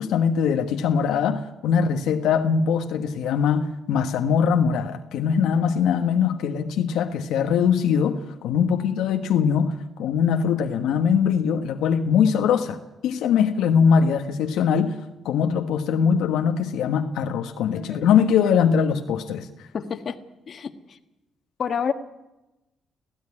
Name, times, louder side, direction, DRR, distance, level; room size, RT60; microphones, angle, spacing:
voice 1, 0.0-15.0 15.2-19.7, left 7 dB, 85° left, 5 dB, 1.2 m, -22 dB
voice 2, 19.7-20.2 20.5-21.0 21.6-21.9, left 7 dB, 50° left, 8 dB, 1.6 m, -28 dB
17.5 x 15.5 x 9.8 m, 0.98 s
cardioid pair, 90°, 0 cm